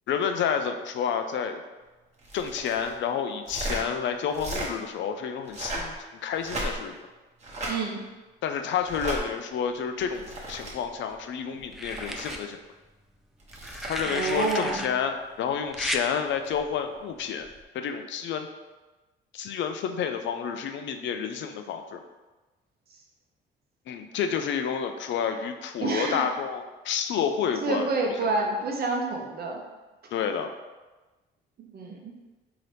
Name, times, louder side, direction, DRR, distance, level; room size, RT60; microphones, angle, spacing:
voice 1, 0.1-1.6 2.3-6.0 6.2-7.0 8.4-12.6 13.9-17.5 17.7-18.5 19.3-22.0 23.9-27.9 30.1-30.5, left 7 dB, 70° left, 6 dB, 0.4 m, -29 dB
sound 1, 2.2-2.9 3.4-3.8 4.3-4.7 5.4-5.9 6.4-7.0 7.4-7.7 8.8-9.2 10.0-10.7 11.6-12.4 13.4-14.6 16.4-16.6, right 1 dB, 35° right, 1.1 m, -35 dB
voice 2, 7.7-8.0 14.0-14.9 25.8-26.3 27.6-29.6 31.7-32.1, right 3 dB, 50° right, 1 dB, 0.8 m, -28 dB
sound 2, 10.5-11.2 11.7-12.4 13.5-14.9 15.7-16.0 17.4-17.6, equal, ahead, 0.3 m, -34 dB
3.9 x 2.8 x 3.3 m, 1.2 s
cardioid pair, 90°, 20 cm